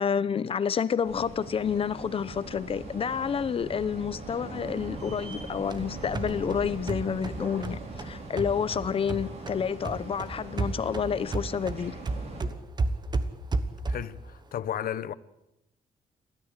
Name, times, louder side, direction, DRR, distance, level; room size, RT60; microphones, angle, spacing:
voice 1, 0.0-12.0, left 7 dB, 35° left, 0.8 m, -29 dB
sound 1, 1.0-12.4, right 2 dB, 45° right, 5.9 m, -41 dB
sound 2, 5.3-9.6 9.8-14.2, right 3 dB, 30° right, 1.2 m, -33 dB
voice 2, 13.9-15.1, left 10 dB, 70° left, 1.0 m, -33 dB
28.5 x 13.5 x 8.3 m
wide cardioid pair, 160°, 15 cm